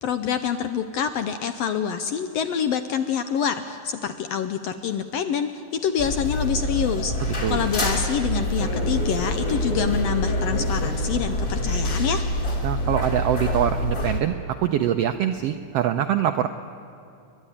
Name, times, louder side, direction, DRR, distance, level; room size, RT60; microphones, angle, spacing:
voice 1, 0.0-12.2, left 7 dB, 75° left, 9 dB, 1.5 m, -26 dB
sound 1, 6.0-14.2, left 1 dB, 25° left, 2.7 m, -26 dB
voice 2, 7.2-7.6 12.6-14.3 14.6-16.5, right 10 dB, 85° right, 8 dB, 1.4 m, -24 dB
29.5 x 11.5 x 9.9 m, 2.6 s
omnidirectional pair, 3.5 m